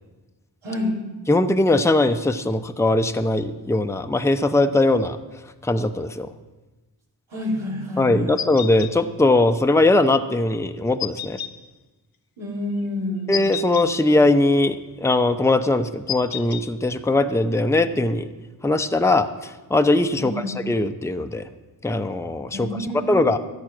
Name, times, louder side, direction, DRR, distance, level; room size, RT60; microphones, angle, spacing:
voice 1, 0.6-0.9 7.3-8.3 12.4-13.4 20.2-20.5 22.5-23.4, left 1 dB, 85° right, -3 dB, 3.5 m, -28 dB
voice 2, 1.3-5.2 5.6-6.3 8.0-11.4 13.3-18.3 18.6-20.3 20.7-21.5 21.8-22.7 23.1-23.4, left 2 dB, 5° left, 8 dB, 0.8 m, -20 dB
sound 1, 8.4-8.9 11.0-11.5 13.3-13.9 16.1-16.6, left 10 dB, 50° left, 1.1 m, -30 dB
13.5 x 8.7 x 6.1 m, 1.2 s
cardioid pair, 45°, 45 cm